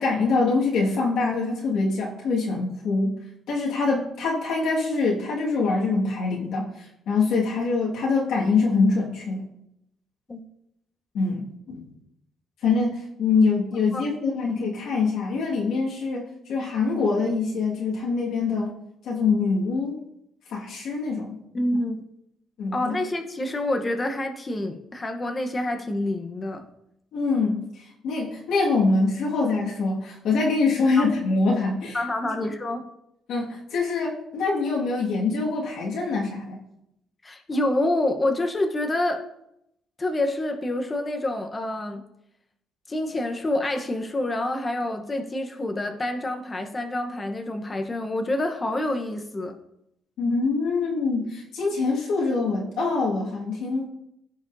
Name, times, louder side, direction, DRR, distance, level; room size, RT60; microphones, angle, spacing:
voice 1, 0.0-3.1 3.5-9.4 11.1-11.8 12.6-18.8 19.0-20.0 20.5-21.4 22.6-23.0 27.1-27.6 28.0-32.0 33.3-36.6 50.2-53.8, left 4 dB, 75° left, -4 dB, 1.8 m, -24 dB
voice 2, 21.5-22.0 22.7-26.6 31.0-31.1 31.9-32.9 37.2-39.3 40.0-42.0 42.9-49.6, left 1 dB, 25° left, 4 dB, 1.0 m, -27 dB
15.0 x 5.1 x 2.7 m, 0.81 s
cardioid pair, 100°, 0 cm